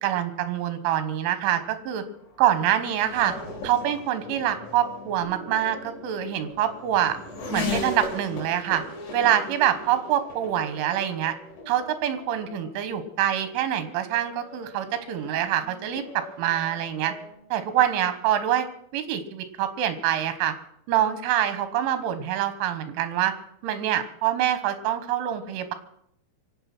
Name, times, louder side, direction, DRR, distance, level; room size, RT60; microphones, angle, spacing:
voice 1, 0.0-2.0 2.4-3.3 3.6-7.2 7.5-8.8 9.1-11.4 11.7-16.0 16.4-17.1 17.5-18.7 18.9-20.5 20.9-23.3 23.6-25.7, right 11 dB, 80° right, 11 dB, 3.8 m, -25 dB
Race car auto racing / Accelerating revving vroom, 1.3-17.4, left 2 dB, 70° left, 6.0 m, -39 dB
25.0 x 8.5 x 6.1 m, 0.70 s
omnidirectional pair, 5.6 m